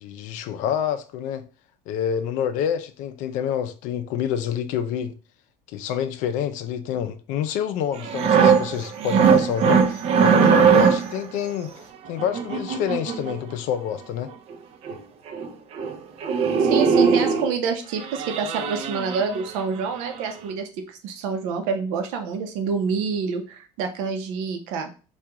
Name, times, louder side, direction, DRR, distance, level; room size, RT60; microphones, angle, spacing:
voice 1, 0.0-1.4 1.9-5.1 5.7-11.7 12.1-14.3, left 9 dB, 65° left, 0.4 m, -27 dB
sound 1, 8.0-11.2 12.2-13.4 14.5-14.6 14.8-15.0 15.3-15.5 15.8-16.0 16.2-17.5 18.0-19.6 20.0-20.2, right 6 dB, 45° right, 0.5 m, -20 dB
voice 2, 16.6-24.9, right 5 dB, 80° right, 0.7 m, -27 dB
3.4 x 2.4 x 2.9 m
cardioid pair, 130°, 14 cm